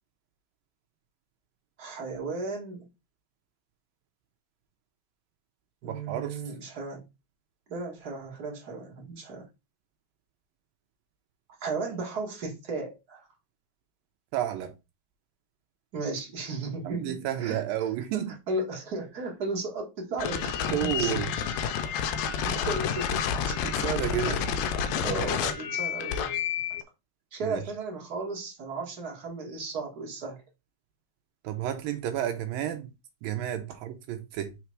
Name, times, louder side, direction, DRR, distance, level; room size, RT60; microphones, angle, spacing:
voice 1, 1.8-2.9 5.8-7.0 7.7-9.5 11.6-13.3 15.9-17.6 18.1-21.1 22.4-23.8 24.2-24.4 25.0-26.4 26.7-26.8 27.3-30.4, right 3 dB, 40° right, 1.5 m, -35 dB
voice 2, 5.8-6.4 14.3-14.7 16.8-18.4 20.7-21.3 23.6-24.4 27.4-27.6 31.4-32.9 33.2-34.6, right 11 dB, 75° right, 2.2 m, -31 dB
sound 1, 20.2-26.8, left 7 dB, 80° left, 2.2 m, -29 dB
6.0 x 3.6 x 4.6 m
omnidirectional pair, 4.6 m